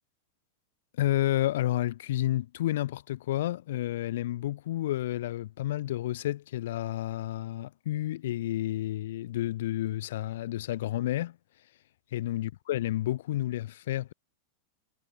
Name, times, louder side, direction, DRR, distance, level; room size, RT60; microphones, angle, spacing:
voice 1, 1.0-11.4 12.1-14.1, left 14 dB, 55° left, 1.8 m, -30 dB
figure-of-eight pair, 90°, 0 cm